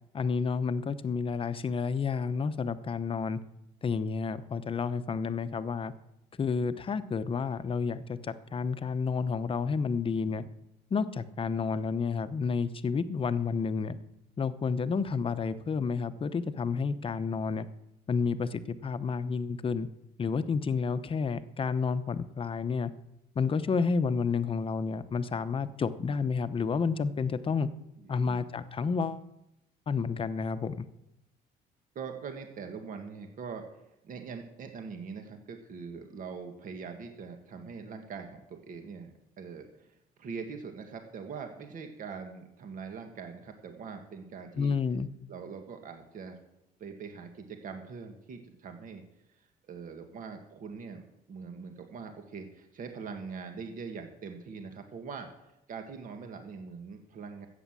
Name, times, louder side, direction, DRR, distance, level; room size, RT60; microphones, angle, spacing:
voice 1, 0.1-3.4 3.8-5.9 6.4-10.4 10.9-14.0 14.4-17.7 18.1-19.9 20.2-22.9 23.3-27.7 28.1-29.2 29.9-30.8 44.5-45.1, left 5 dB, 30° left, 12 dB, 0.8 m, -30 dB
voice 2, 10.1-10.5 28.0-28.5 31.9-44.7 45.3-46.4 46.8-49.0 49.4-55.3 55.7-57.5, right 5 dB, 50° right, 5 dB, 1.8 m, -43 dB
13.5 x 8.5 x 7.5 m, 0.87 s
cardioid pair, 110°, 17 cm